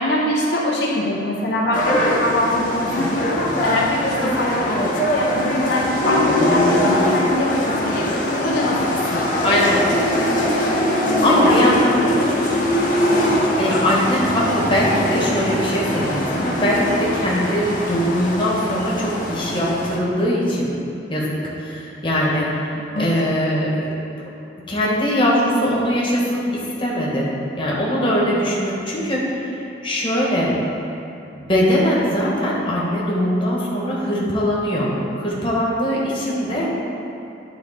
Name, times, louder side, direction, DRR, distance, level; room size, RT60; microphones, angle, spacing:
voice 1, 0.0-3.3 3.6-4.8 5.1-9.6 10.4-11.8 12.0-12.7 13.3-13.4 22.9-23.1 36.3-36.4, left 1 dB, 70° left, -3 dB, 0.8 m, -24 dB
sound 1, 1.7-20.0, left 1 dB, 45° left, 1.0 m, -21 dB
voice 2, 9.4-9.8 10.9-12.0 13.5-20.7 21.1-22.7 23.0-23.9 24.7-27.3 27.6-29.6 29.8-30.5 31.3-36.7, equal, 30° left, -5 dB, 1.3 m, -21 dB
10.0 x 3.9 x 4.2 m, 2.7 s
head